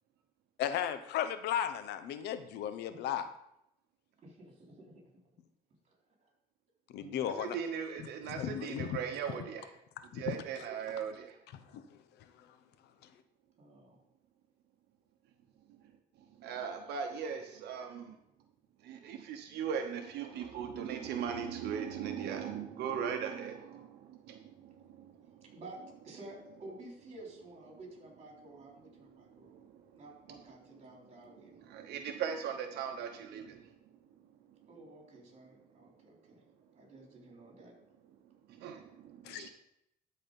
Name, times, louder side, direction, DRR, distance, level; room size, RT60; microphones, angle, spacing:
voice 1, 0.6-3.2 6.9-7.6 8.3-9.0 10.1-10.4 11.7-11.8 39.2-39.5, left 10 dB, 80° left, 11 dB, 0.7 m, -35 dB
voice 2, 4.2-5.0 5.3-5.4 7.0-7.4 13.6-14.0 25.4-25.8 26.0-29.6 30.0-31.6 34.7-36.4 36.8-37.7, right 2 dB, 40° right, -1 dB, 3.6 m, -52 dB
voice 3, 7.2-9.7 10.1-11.4 16.4-18.2 18.8-25.2 31.7-33.7 38.6-39.5, right 7 dB, 80° right, 5 dB, 0.9 m, -39 dB
12.5 x 4.3 x 5.3 m, 0.80 s
cardioid pair, 110°, 17 cm